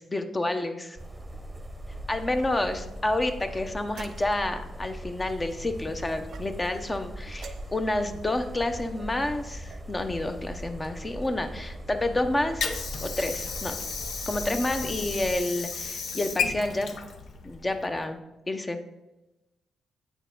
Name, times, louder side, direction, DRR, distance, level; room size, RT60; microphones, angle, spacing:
voice 1, 0.1-1.0 2.1-12.6 13.0-13.8 14.3-16.9 17.4-18.2 18.5-18.8, left 2 dB, 25° left, 7 dB, 0.7 m, -29 dB
sound 1, 1.0-15.4, right 1 dB, 15° right, 0.9 m, -40 dB
sound 2, 3.5-4.5 6.2-6.8 7.3-8.1 9.0-9.9 10.8-11.4 12.3-12.6 13.1-13.6, right 6 dB, 70° right, 0.5 m, -49 dB
Water / Sink (filling or washing), 12.1-18.1, left 5 dB, 70° left, 0.7 m, -34 dB
8.0 x 4.5 x 3.8 m, 1.0 s
cardioid pair, 65°, 0 cm